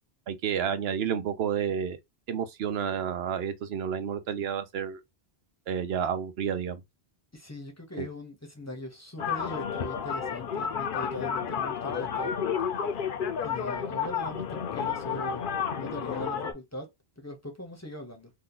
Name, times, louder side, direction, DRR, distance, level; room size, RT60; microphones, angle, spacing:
voice 1, 0.3-2.0 2.3-5.0 5.7-6.8 8.0-8.1, right 8 dB, 75° right, 0.9 m, -30 dB
voice 2, 7.3-12.4 13.4-15.4 15.7-16.9 17.2-18.3, left 1 dB, 15° left, 0.7 m, -40 dB
sound 1, 9.2-16.5, left 7 dB, 60° left, 0.7 m, -31 dB
2.8 x 2.3 x 3.7 m
omnidirectional pair, 1.1 m